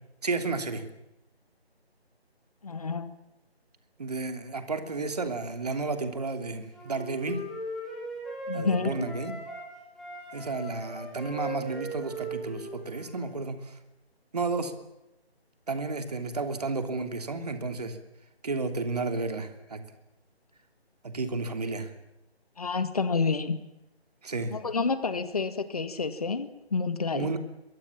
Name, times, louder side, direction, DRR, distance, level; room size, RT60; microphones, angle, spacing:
voice 1, 0.2-0.9 4.0-7.4 8.5-9.3 10.3-13.7 14.3-14.7 15.7-18.0 18.4-19.8 21.0-21.9 24.2-24.6 27.1-27.4, right 3 dB, 35° right, 7 dB, 2.9 m, -32 dB
voice 2, 2.6-3.1 8.5-9.1 22.6-23.6 24.5-27.3, left 4 dB, 35° left, 12 dB, 2.0 m, -29 dB
Wind instrument woodwind instrument, 6.7-9.7 10.0-13.3, right 1 dB, ahead, 3.1 m, -39 dB
27.0 x 23.0 x 7.4 m, 0.92 s
figure-of-eight pair, 160°, 32 cm